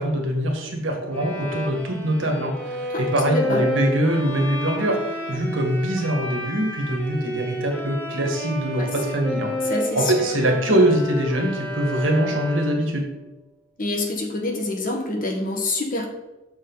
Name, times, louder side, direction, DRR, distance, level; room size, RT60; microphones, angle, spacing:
voice 1, 0.0-13.1, right 1 dB, 90° right, 2 dB, 1.6 m, -23 dB
Bowed string instrument, 1.1-13.0, equal, 10° left, 1.4 m, -31 dB
voice 2, 2.9-3.6 8.8-8.9 9.7-10.1 13.8-16.1, left 2 dB, 45° left, 2 dB, 1.4 m, -26 dB
6.7 x 6.3 x 3.9 m, 0.99 s
head